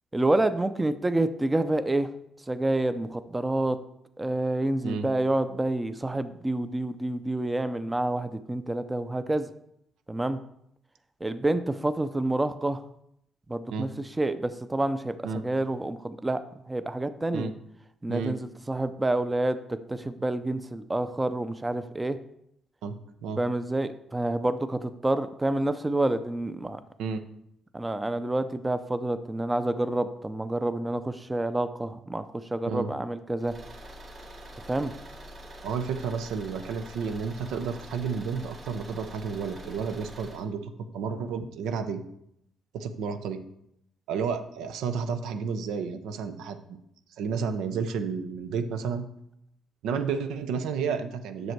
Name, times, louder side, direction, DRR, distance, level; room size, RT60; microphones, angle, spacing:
voice 1, 0.1-2.1 2.5-3.8 4.2-9.5 10.1-10.4 11.2-12.8 13.5-13.9 14.2-15.1 15.4-16.4 16.7-17.5 18.0-19.6 19.9-22.2 23.4-26.8 27.7-32.2 32.5-33.5 34.7-34.9, right 2 dB, 15° right, 11 dB, 0.5 m, -28 dB
voice 2, 22.8-23.4 27.0-27.2 32.7-32.9 35.6-42.0 42.7-43.5 44.1-46.8 47.2-49.1 49.8-51.5, right 6 dB, 90° right, 8 dB, 0.7 m, -31 dB
Car / Engine, 33.4-40.5, equal, 45° right, 2.1 m, -45 dB
7.8 x 6.3 x 4.6 m, 0.76 s
cardioid pair, 90°, 0 cm